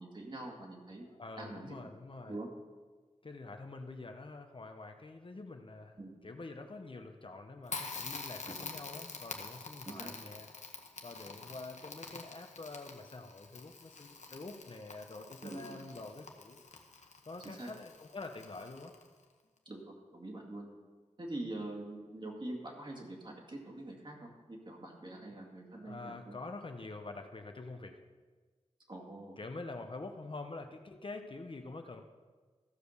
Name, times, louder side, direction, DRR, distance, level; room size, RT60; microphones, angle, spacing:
voice 1, 0.0-1.1 1.4-1.8 2.3-2.5 6.0-6.1 9.9-10.1 15.4-15.8 17.4-17.7 19.7-20.7 21.2-26.3 28.9-29.3, right 1 dB, 40° right, 0 dB, 2.3 m, -44 dB
voice 2, 1.1-2.3 3.2-6.0 6.2-10.5 11.0-16.6 17.3-18.9 25.7-28.0 29.4-32.0, left 3 dB, 45° left, 5 dB, 0.8 m, -46 dB
Crackle, 7.7-19.2, left 4 dB, 85° left, 1.0 m, -47 dB
14.5 x 5.1 x 6.6 m, 1.4 s
wide cardioid pair, 85°, 12 cm